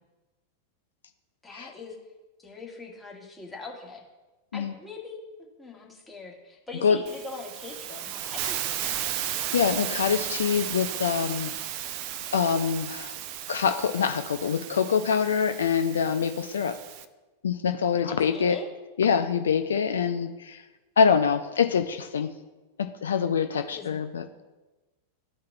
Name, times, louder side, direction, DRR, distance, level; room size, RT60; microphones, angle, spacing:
voice 1, 1.4-1.9 2.4-4.0 4.5-9.2 18.0-18.7 23.5-24.4, left 3 dB, 10° left, -2 dB, 1.7 m, -43 dB
Hiss, 7.1-17.1, right 11 dB, 45° right, 0.4 m, -34 dB
voice 2, 9.5-11.5 12.3-13.1 13.5-16.8 17.4-18.6 19.0-20.6 21.0-22.3 22.8-24.2, left 6 dB, 65° left, 8 dB, 0.4 m, -25 dB
13.5 x 4.7 x 2.3 m, 1.1 s
figure-of-eight pair, 90°, 0 cm